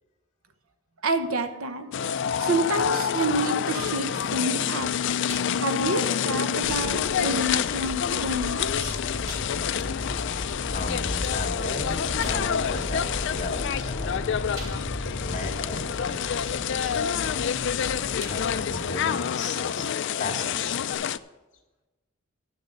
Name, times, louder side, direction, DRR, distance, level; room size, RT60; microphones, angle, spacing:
voice 1, 1.0-1.9 2.4-4.9 5.5-9.0, right 2 dB, 85° right, 8 dB, 0.9 m, -28 dB
sound 1, 1.9-21.2, left 8 dB, 60° left, 0.4 m, -28 dB
sound 2, 5.3-6.0 6.3-6.4 7.0-7.1 8.0-8.1 8.5-8.6 9.2-9.7 11.3-11.4 12.2-12.6 14.5-15.1 15.6-15.7 17.5-17.7 18.2-18.7 19.1-19.2 20.9-21.0, right 1 dB, 30° right, 4.6 m, -43 dB
sound 3, 6.6-18.9, left 1 dB, 5° left, 2.0 m, -36 dB
voice 2, 10.7-14.4 15.0-17.6 18.2-19.9 20.2-21.0, left 2 dB, 35° left, 0 dB, 2.3 m, -36 dB
12.0 x 6.8 x 6.5 m, 1.1 s
head